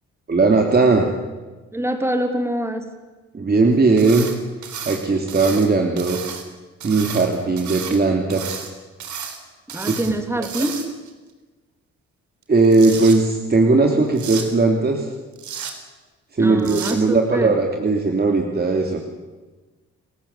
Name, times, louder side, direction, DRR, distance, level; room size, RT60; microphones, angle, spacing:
voice 1, 0.3-1.1 3.3-4.3 4.9-6.2 6.8-8.7 9.8-10.1 12.5-15.1 16.3-19.0, right 3 dB, 30° right, 2 dB, 3.0 m, -18 dB
voice 2, 1.7-2.9 9.7-10.9 16.4-17.6, right 1 dB, 10° right, 6 dB, 3.0 m, -25 dB
sound 1, 4.0-4.4 4.6-5.7 6.0-6.4 6.8-8.0 8.3-8.7 9.0-9.4 9.7-10.1 10.4-11.1 12.4-13.2 14.2-14.5 15.4-15.7 16.6-17.0, right 7 dB, 70° right, 4.0 m, -32 dB
29.5 x 15.5 x 8.3 m, 1.3 s
cardioid pair, 90°, 30 cm